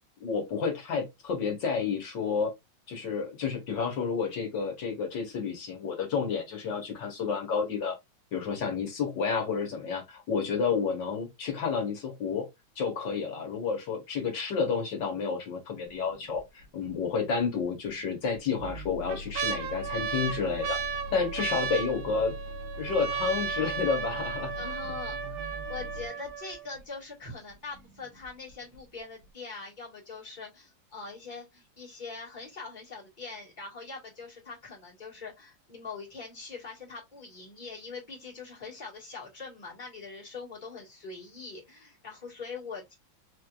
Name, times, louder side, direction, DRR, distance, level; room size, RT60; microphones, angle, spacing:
voice 1, 0.2-2.5 2.9-8.0 8.3-12.5 12.8-22.4 22.8-24.5 24.8-24.9, left 5 dB, 60° left, 1.7 m, -30 dB
sound 1, 15.9-16.4 16.9-17.0 17.9-18.4 18.8-26.8 27.5-27.6 27.8-28.3 28.7-28.8, right 6 dB, 60° right, 1.1 m, -35 dB
sound 2, 18.6-26.1, left 3 dB, 80° right, 2.0 m, -41 dB
voice 2, 24.6-42.9, left 4 dB, 20° left, 1.9 m, -43 dB
4.4 x 3.3 x 2.4 m
omnidirectional pair, 2.4 m